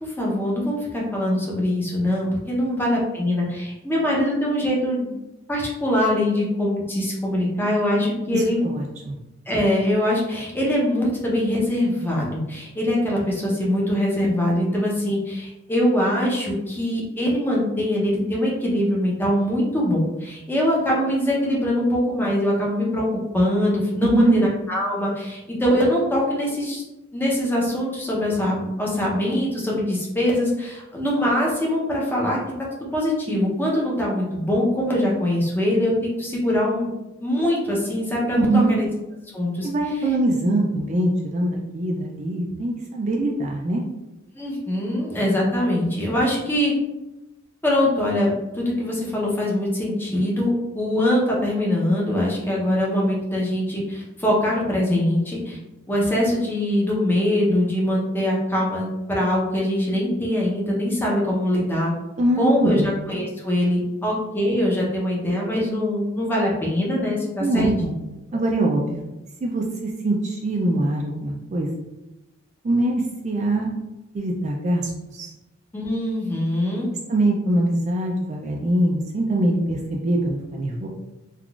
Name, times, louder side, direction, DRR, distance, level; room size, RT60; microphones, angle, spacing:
voice 1, 0.0-5.1 5.5-8.6 9.5-23.0 23.3-26.8 27.1-32.4 32.9-36.9 37.2-38.9 39.3-39.7 44.4-46.7 47.6-55.6 55.9-61.9 62.4-67.7 75.7-76.9, left 1 dB, 10° left, -4 dB, 0.6 m, -23 dB
voice 2, 8.3-9.2 24.0-24.4 38.3-38.7 39.6-43.8 62.2-62.9 67.4-68.0 68.3-69.0 69.4-71.7 72.6-73.7 74.1-75.3 77.1-80.9, right 1 dB, 35° right, 0 dB, 0.3 m, -23 dB
3.6 x 2.3 x 2.3 m, 0.99 s
head